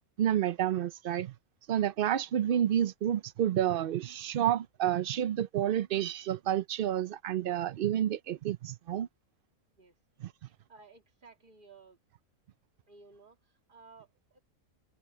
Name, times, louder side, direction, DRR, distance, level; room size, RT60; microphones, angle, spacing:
voice 1, 0.2-1.3 1.7-9.1 10.2-10.3, right 11 dB, 90° right, 0.4 m, -29 dB
voice 2, 10.7-12.0 12.9-14.4, right 4 dB, 35° right, 2.5 m, -56 dB
omnidirectional pair, 1.6 m